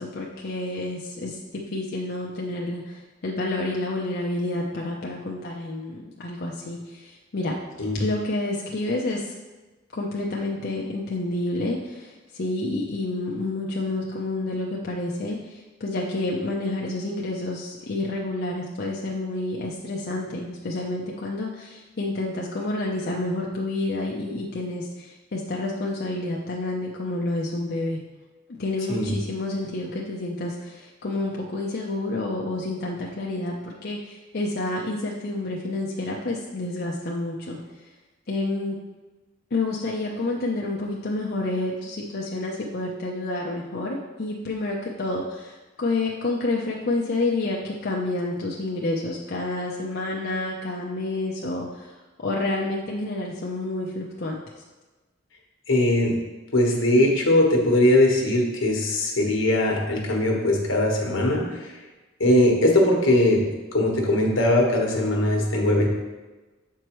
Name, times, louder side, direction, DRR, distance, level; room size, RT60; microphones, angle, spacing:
voice 1, 0.0-7.6 8.0-9.3 9.9-28.0 28.6-37.6 38.3-38.8 39.5-54.4, left 2 dB, 55° left, -2 dB, 0.6 m, -29 dB
voice 2, 55.7-56.2 56.5-61.8 62.2-65.9, left 1 dB, 80° left, 0 dB, 1.3 m, -20 dB
7.8 x 4.6 x 3.1 m, 1.2 s
head